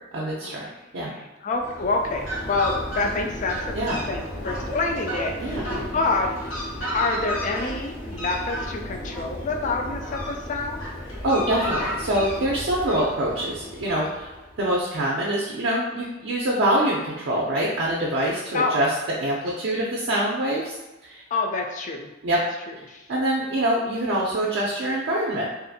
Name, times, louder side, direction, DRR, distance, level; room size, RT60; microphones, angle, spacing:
voice 1, 0.1-0.7 0.9-1.1 3.0-3.3 3.7-4.0 5.4-5.6 11.2-14.3 14.6-18.9 19.2-20.8 21.0-21.2 22.2-22.4 23.1-25.5, right 1 dB, 65° right, -5 dB, 0.5 m, -25 dB
voice 2, 1.0-6.3 6.9-10.8 18.5-18.8 21.3-23.1, left 3 dB, 40° left, 2 dB, 0.4 m, -27 dB
Fowl, 1.5-14.6, equal, 75° left, 1.0 m, -32 dB
2.6 x 2.4 x 2.6 m, 1.1 s
head